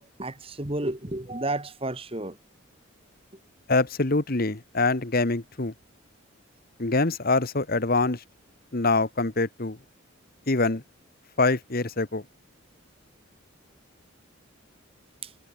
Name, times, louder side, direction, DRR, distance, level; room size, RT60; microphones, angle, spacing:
voice 1, 0.0-2.4 15.2-15.3, right 2 dB, 25° right, 1.8 m, -32 dB
voice 2, 3.7-5.7 6.8-8.2 8.7-9.8 10.5-10.8 11.4-12.2, left 3 dB, 45° left, 1.2 m, -24 dB
head